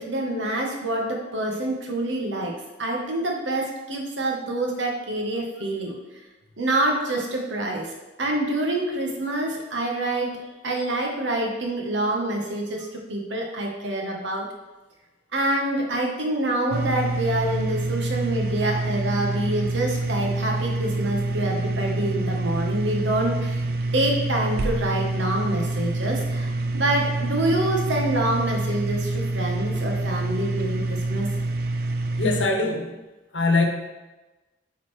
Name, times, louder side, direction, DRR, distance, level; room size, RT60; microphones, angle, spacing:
voice 1, 0.0-2.5 2.8-6.0 6.6-7.9 8.2-10.3 10.6-14.5 15.3-23.6 23.9-31.3, right 1 dB, 90° right, 0 dB, 1.2 m, -26 dB
sound 1, 16.7-32.5, right 2 dB, 55° right, 0.4 m, -27 dB
voice 2, 32.2-32.9 33.3-33.7, left 3 dB, 85° left, 3 dB, 1.0 m, -22 dB
8.5 x 4.1 x 3.2 m, 1.1 s
head